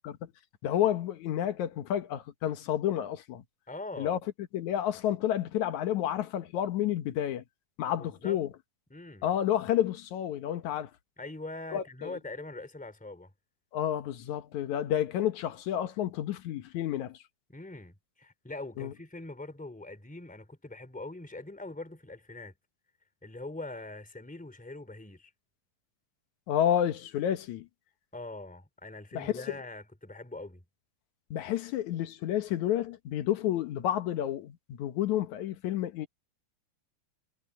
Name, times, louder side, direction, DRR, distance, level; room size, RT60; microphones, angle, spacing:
voice 1, 0.6-3.4 4.0-4.2 4.5-7.4 7.8-8.5 9.2-10.9 11.7-12.2 13.7-17.2 18.8-18.9 26.5-27.7 29.1-29.4 31.3-36.1, left 11 dB, 70° left, 2.4 m, -30 dB
voice 2, 3.7-4.2 7.9-8.4 8.9-9.3 11.2-13.3 17.5-22.5 23.2-25.3 28.1-30.6, left 2 dB, 5° left, 3.1 m, -43 dB
omnidirectional pair, 3.7 m